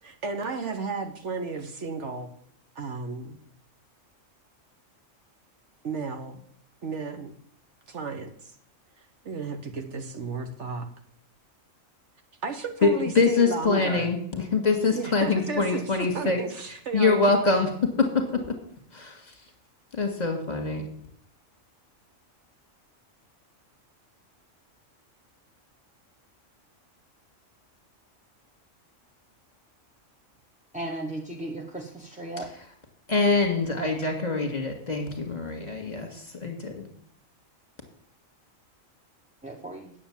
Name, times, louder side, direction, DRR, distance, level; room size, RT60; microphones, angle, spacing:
voice 1, 0.0-2.3 2.7-3.4 5.8-6.4 6.8-7.3 7.9-8.3 9.2-10.9 12.4-14.1 14.9-17.4, right 4 dB, 60° right, 6 dB, 1.4 m, -33 dB
voice 2, 13.2-16.4 16.9-18.4 18.9-19.2 19.9-20.9 33.1-36.9, left 4 dB, 30° left, 3 dB, 2.0 m, -24 dB
voice 3, 30.7-32.5 39.4-39.9, right 1 dB, 5° right, -1 dB, 0.8 m, -36 dB
9.4 x 7.2 x 7.2 m, 0.65 s
omnidirectional pair, 1.4 m